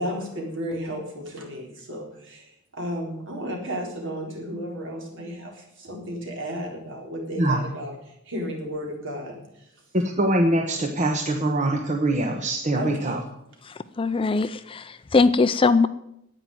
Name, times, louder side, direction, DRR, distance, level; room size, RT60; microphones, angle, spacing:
voice 1, 0.0-7.9 8.3-9.4 12.8-13.2, equal, 60° right, 0 dB, 4.1 m, -33 dB
voice 2, 9.9-13.2, right 1 dB, 35° right, 2 dB, 1.2 m, -23 dB
voice 3, 13.6-15.9, left 4 dB, 25° left, 13 dB, 0.4 m, -21 dB
10.5 x 9.0 x 9.1 m, 0.79 s
head